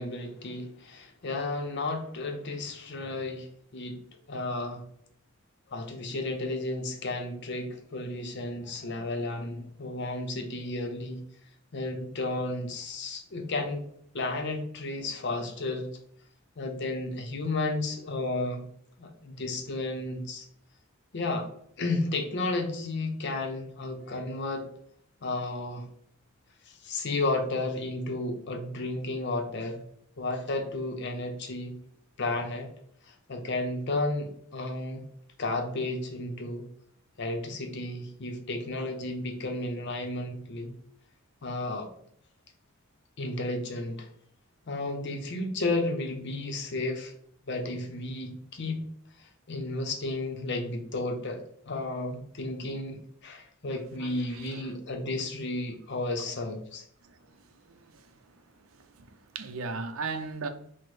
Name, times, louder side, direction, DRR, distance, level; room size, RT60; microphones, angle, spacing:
voice 1, 0.0-3.5 3.7-4.0 4.3-4.8 5.7-11.2 11.7-13.9 14.1-15.9 16.6-18.7 19.0-20.5 21.1-21.5 21.8-24.7 25.2-25.9 26.7-29.8 30.2-31.8 32.2-32.7 33.1-35.1 35.4-36.7 37.2-40.7 41.4-41.9 43.2-44.1 44.7-47.1 47.5-48.8 49.2-51.4 51.7-56.9, left 2 dB, 55° left, 0.6 m, -33 dB
voice 2, 54.0-54.6 57.7-57.8 59.0-60.5, right 4 dB, 75° right, 0.5 m, -36 dB
6.0 x 2.1 x 3.1 m
head